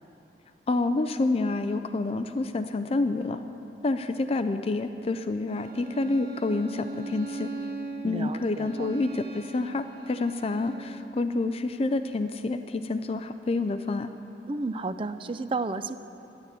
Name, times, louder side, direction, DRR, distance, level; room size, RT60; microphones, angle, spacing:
voice 1, 0.7-3.4 3.8-7.5 8.0-14.1, left 3 dB, 35° left, 9 dB, 0.4 m, -28 dB
Bowed string instrument, 5.5-11.0, right 3 dB, 65° right, 1.6 m, -39 dB
voice 2, 8.0-8.9 14.5-15.9, right 3 dB, 30° right, 11 dB, 0.4 m, -32 dB
11.5 x 10.5 x 8.3 m, 2.9 s
head